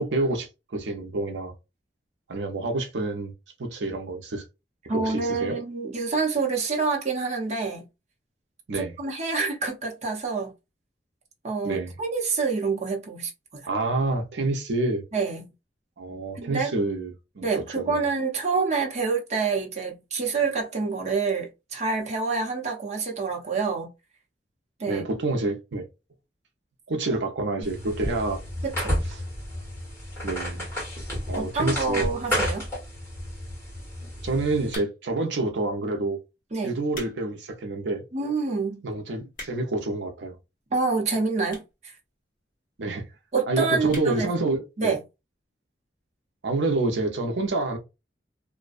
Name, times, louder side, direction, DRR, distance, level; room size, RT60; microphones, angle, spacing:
voice 1, 0.0-1.5 2.3-3.3 3.6-4.4 4.9-5.6 8.7-8.9 11.6-11.9 13.7-15.0 16.0-17.1 17.4-17.5 17.7-18.0 24.9-25.8 26.9-28.4 29.1-29.2 30.2-30.7 31.3-32.0 34.2-36.2 36.6-38.0 38.8-40.4 42.8-43.0 43.5-44.9 46.4-47.8, right 2 dB, 80° right, 0.6 m, -28 dB
voice 2, 4.9-7.8 8.7-10.5 11.4-13.7 15.1-15.5 16.4-16.7 17.4-23.9 24.8-25.0 27.6-27.7 28.6-29.0 31.3-32.7 36.5-36.8 38.1-38.8 40.7-41.9 43.3-44.3 44.8-45.0, right 4 dB, 40° right, 0.8 m, -27 dB
sound 1, 27.6-34.8, equal, 15° left, 1.3 m, -31 dB
sound 2, 34.7-35.2 35.9-36.1 36.7-37.2 37.6-37.7 38.3-38.4 38.6-38.7 39.0-39.8 40.6-40.7 41.5-41.8 42.1-42.2 42.4-42.5 42.7-42.8 43.1-43.4 43.9-44.1 44.5-44.6 44.8-44.9, left 2 dB, 50° left, 1.1 m, -41 dB
2.5 x 2.1 x 2.4 m
head